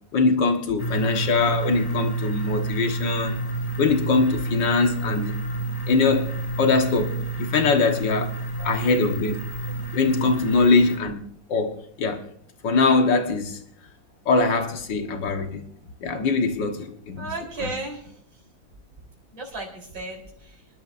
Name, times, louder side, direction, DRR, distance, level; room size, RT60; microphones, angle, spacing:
voice 1, 0.1-3.5 3.8-5.3 5.9-8.3 8.6-9.4 9.9-12.3 12.6-13.6 14.3-15.7 16.0-17.3, left 4 dB, 65° left, 2.0 m, -22 dB
sound 1, 0.8-11.0, right 2 dB, 25° left, 0.8 m, -29 dB
voice 2, 17.2-18.1 19.3-20.6, right 2 dB, 65° right, 4.5 m, -35 dB
27.5 x 11.5 x 2.6 m
omnidirectional pair, 2.2 m